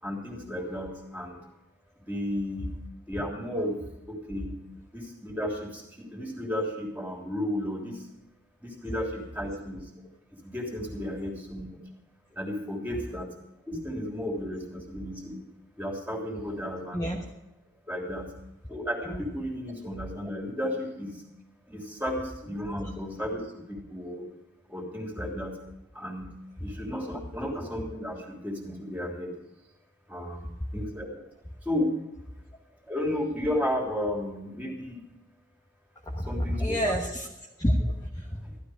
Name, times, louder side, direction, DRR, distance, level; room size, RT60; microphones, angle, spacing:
voice 1, 0.0-1.5 2.0-2.7 3.1-3.8 4.1-4.6 4.9-8.1 8.6-9.9 10.3-11.8 12.3-13.3 13.7-15.4 15.7-17.0 17.9-18.3 18.7-21.2 21.7-24.2 24.7-25.6 25.9-26.3 26.6-29.3 30.1-31.2 31.6-32.0 32.8-35.0 36.3-36.9 38.4-38.5, left 1 dB, 10° right, 0 dB, 3.2 m, -33 dB
voice 2, 36.0-37.3 37.6-38.4, equal, 15° left, -1 dB, 1.2 m, -28 dB
15.0 x 12.5 x 4.9 m, 0.91 s
head